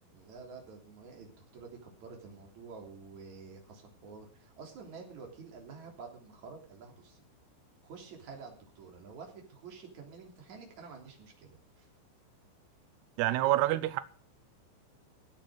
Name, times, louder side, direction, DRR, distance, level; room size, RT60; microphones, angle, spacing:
voice 1, 0.1-7.2 7.8-11.5 11.8-11.9, right 5 dB, 40° right, 4.3 m, -49 dB
voice 2, 13.2-14.0, right 15 dB, 90° right, 2.3 m, -27 dB
17.5 x 9.0 x 6.5 m
omnidirectional pair, 5.7 m